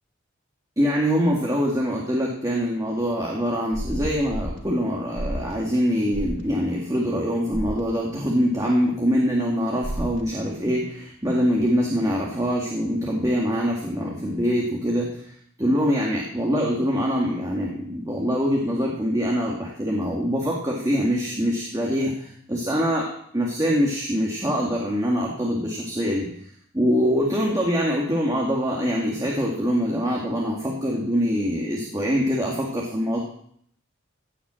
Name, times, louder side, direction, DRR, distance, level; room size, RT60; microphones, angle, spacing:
voice 1, 0.8-15.3 15.6-23.1 23.3-26.3 26.7-33.2, equal, 20° right, -3 dB, 2.1 m, -24 dB
sound 1, 3.7-4.6 5.2-5.5 6.1-6.4 7.5-7.8 9.8-10.2, equal, 75° right, 1.7 m, -30 dB
16.0 x 5.9 x 7.6 m, 0.65 s
head